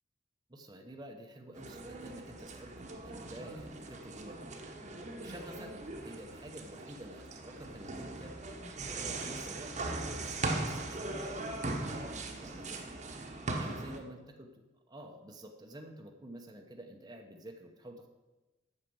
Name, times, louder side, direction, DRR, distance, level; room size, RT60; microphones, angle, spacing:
voice 1, 0.5-4.7 5.2-8.4 8.8-14.5 14.9-18.1, right 1 dB, 20° right, 2 dB, 0.9 m, -49 dB
sound 1, 1.5-14.0, right 2 dB, 40° right, 1.1 m, -40 dB
8.7 x 6.5 x 7.8 m, 1.1 s
head